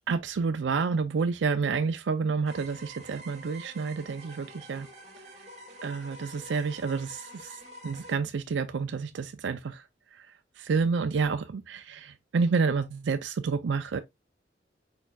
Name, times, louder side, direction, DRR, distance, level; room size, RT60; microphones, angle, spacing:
voice 1, 0.1-4.9 5.3-5.5 5.8-14.0, right 5 dB, 90° right, 0.4 m, -29 dB
sound 1, 2.5-8.1, right 1 dB, 40° right, 1.6 m, -47 dB
4.5 x 4.5 x 2.3 m
head